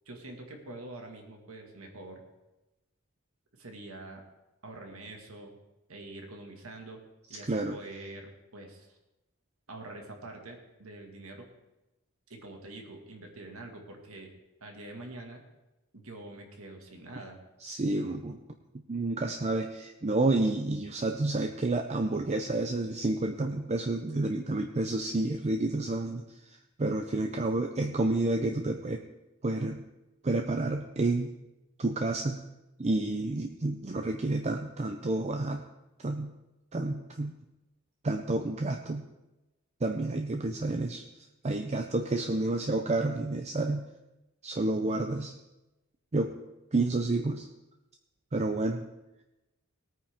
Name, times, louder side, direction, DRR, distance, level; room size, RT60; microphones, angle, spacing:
voice 1, 0.1-2.2 3.6-4.2 4.6-5.6 5.9-7.0 7.3-9.0 9.7-11.5 12.3-14.3 14.6-15.4 15.9-17.4, right 2 dB, 75° right, 2 dB, 2.0 m, -45 dB
voice 2, 17.6-18.4 18.9-26.2 26.8-29.0 29.4-29.8 30.2-31.3 31.8-32.4 32.8-35.6 36.0-36.3 36.7-37.3 38.0-39.0 39.8-41.0 41.4-43.8 44.4-45.3 46.1-46.3 46.7-47.5 48.3-48.9, right 2 dB, 30° right, 5 dB, 0.6 m, -29 dB
18.5 x 9.1 x 3.6 m, 1.0 s
head